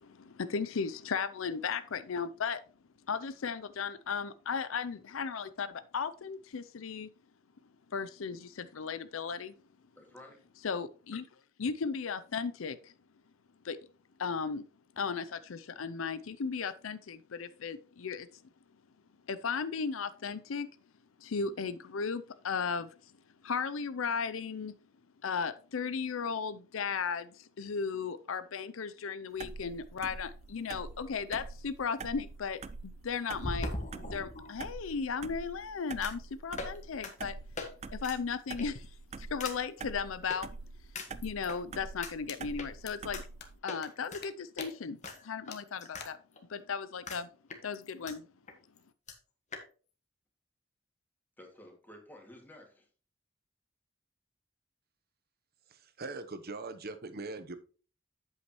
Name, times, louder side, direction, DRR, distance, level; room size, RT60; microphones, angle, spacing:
voice 1, 0.0-2.6 3.1-7.1 7.9-9.5 10.6-11.3 11.6-12.9 13.6-13.8 14.2-14.7 15.0-18.3 19.3-20.7 21.2-22.9 23.4-24.7 25.2-33.7 34.1-37.4 37.9-40.5 41.2-43.2 43.6-46.2 46.5-47.3 47.6-48.2, left 5 dB, 80° left, 13 dB, 0.5 m, -36 dB
voice 2, 10.0-10.5 51.4-52.9, left 1 dB, 10° left, 2 dB, 2.3 m, -53 dB
sound 1, 29.4-43.6, right 4 dB, 35° right, 0.4 m, -45 dB
sound 2, 30.9-31.0 33.4-34.7 36.0-36.2 36.6-36.8 37.0-37.1 37.6-37.7 38.0-38.2 38.6-38.8 39.4-39.6 40.3-40.4 40.9-41.6 42.0-42.1 42.6-42.7 43.1-43.2 43.7-44.2 44.6-44.7 45.0-46.1 46.4-46.5 47.1-47.2 47.5-48.1 48.5-48.6 48.8-48.9 49.1-49.2 49.5-49.6, left 2 dB, 35° left, 1.5 m, -40 dB
sound 3, 42.3-42.4 42.8-42.9 43.4-43.5 43.8-43.9 44.2-44.3 44.6-44.7 45.0-45.1 45.5-45.6 46.0-46.1, left 7 dB, 55° left, 1.3 m, -45 dB
voice 3, 55.7-57.6, right 3 dB, 50° right, 10 dB, 1.0 m, -41 dB
8.2 x 8.1 x 3.1 m, 0.37 s
head